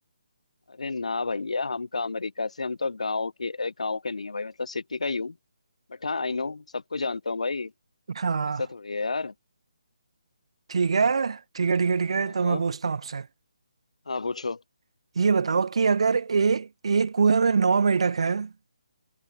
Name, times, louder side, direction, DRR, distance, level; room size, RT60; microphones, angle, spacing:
voice 1, 0.7-5.4 5.9-7.7 8.6-9.3 12.2-12.6 14.1-14.6, left 3 dB, 85° left, 1.3 m, -30 dB
voice 2, 8.1-8.6 10.7-13.3 15.2-18.5, right 5 dB, 60° right, 1.0 m, -23 dB
hypercardioid pair, 165°, 3 cm